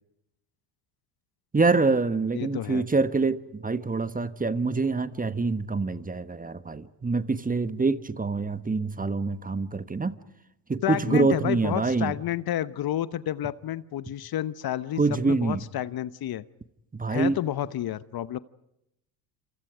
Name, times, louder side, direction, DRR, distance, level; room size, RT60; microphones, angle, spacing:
voice 1, 1.5-10.1 10.7-12.1 15.0-15.6 16.9-17.4, right 3 dB, 15° right, 1.3 m, -25 dB
voice 2, 2.3-2.8 10.8-16.4 17.1-18.4, left 12 dB, 50° left, 1.0 m, -30 dB
28.0 x 28.0 x 5.0 m
hypercardioid pair, 70°, 48 cm